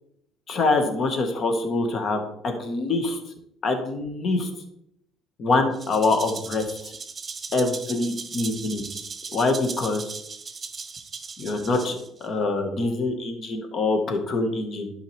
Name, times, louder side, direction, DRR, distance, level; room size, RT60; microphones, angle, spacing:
voice 1, 0.5-3.2 3.6-4.5 5.4-6.9 7.5-8.9 9.3-10.1 11.4-14.9, left 3 dB, 50° left, 5 dB, 1.7 m, -25 dB
Rattle (instrument), 5.7-12.3, right 4 dB, 30° right, 1.0 m, -37 dB
11.0 x 4.9 x 3.5 m, 0.74 s
hypercardioid pair, 60°, 0 cm